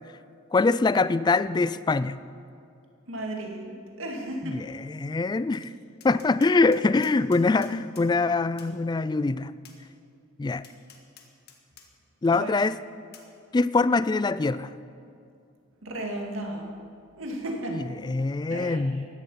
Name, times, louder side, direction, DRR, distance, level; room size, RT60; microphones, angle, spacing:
voice 1, 0.5-2.2 4.4-5.7 6.0-9.5 10.4-10.6 12.2-12.8 13.5-14.7 17.7-19.0, left 3 dB, 20° left, 16 dB, 0.3 m, -24 dB
voice 2, 3.1-4.6 12.3-12.6 15.8-16.7 17.2-17.8 18.5-19.0, right 1 dB, 70° right, 1 dB, 2.2 m, -34 dB
Tap, 5.5-5.6 6.0-8.1 8.6-8.7 9.6-9.8 10.6-11.9 12.3-12.4 13.1-13.3, left 7 dB, 50° left, 1.6 m, -51 dB
16.0 x 11.5 x 5.7 m, 2.4 s
head